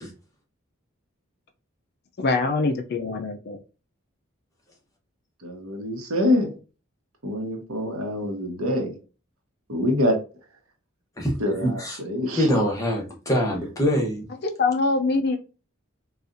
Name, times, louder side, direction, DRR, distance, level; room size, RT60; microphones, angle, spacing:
voice 1, 2.2-3.6 14.6-15.4, left 3 dB, 50° left, 0.4 m, -23 dB
voice 2, 5.4-6.5 7.2-9.0 9.7-10.2 11.4-12.5, left 1 dB, 85° right, 1.0 m, -25 dB
voice 3, 11.6-12.0 12.4-14.3, equal, 15° left, 0.9 m, -24 dB
4.1 x 2.4 x 2.5 m
head